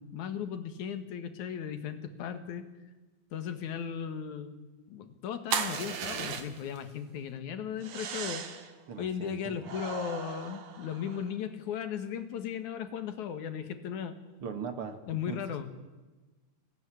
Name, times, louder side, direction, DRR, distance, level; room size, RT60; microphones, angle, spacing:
voice 1, 0.0-2.7 3.3-4.6 4.9-8.5 9.0-14.2 15.1-15.7, left 8 dB, 90° left, 10 dB, 3.1 m, -36 dB
sound 1, 5.5-6.8 7.8-8.7 9.6-11.3, right 7 dB, 70° right, 2.9 m, -36 dB
voice 2, 8.9-9.5 14.4-15.0 15.3-15.4, right 6 dB, 50° right, 8 dB, 2.4 m, -39 dB
23.0 x 17.0 x 10.0 m, 1.2 s
omnidirectional pair, 3.3 m